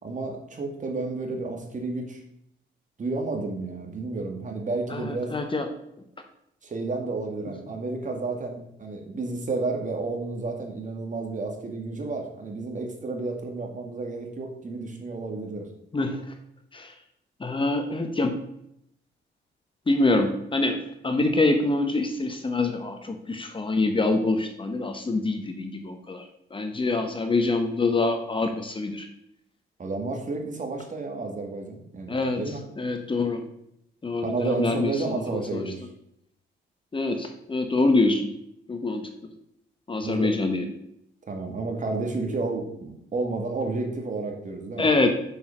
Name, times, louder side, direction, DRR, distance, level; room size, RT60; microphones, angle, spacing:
voice 1, 0.0-2.2 3.0-5.4 6.6-15.7 29.8-32.6 34.2-35.9 40.0-40.3 41.3-44.9, right 3 dB, 40° right, 3 dB, 2.3 m, -31 dB
voice 2, 4.9-5.7 15.9-16.2 16.7-16.9 17.4-18.4 19.9-26.2 26.5-29.1 32.1-32.4 32.8-33.5 34.0-34.9 35.3-35.6 36.9-38.3 38.7-39.1 39.9-40.7 44.8-45.1, left 2 dB, 25° left, 6 dB, 1.2 m, -25 dB
7.1 x 6.5 x 6.2 m, 0.76 s
cardioid pair, 90°, 20 cm